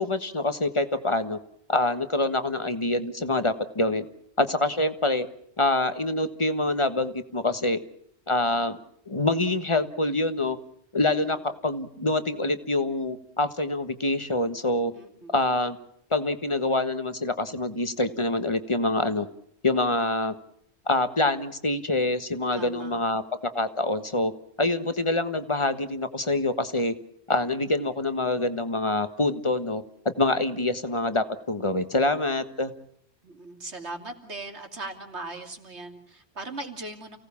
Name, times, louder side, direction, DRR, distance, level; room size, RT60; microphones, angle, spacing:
voice 1, 0.0-1.4 1.7-4.0 4.4-5.3 5.6-7.8 8.3-8.8 9.1-10.6 10.9-14.9 15.3-15.8 16.1-19.3 19.6-20.3 20.9-23.2 23.5-24.3 24.6-26.9 27.3-29.8 30.2-32.7, left 2 dB, 30° left, 10 dB, 1.5 m, -25 dB
voice 2, 14.9-15.3 22.5-23.0 31.7-31.8 33.2-37.2, right 2 dB, 90° right, 4 dB, 3.3 m, -39 dB
29.0 x 18.0 x 7.2 m, 0.71 s
omnidirectional pair, 1.1 m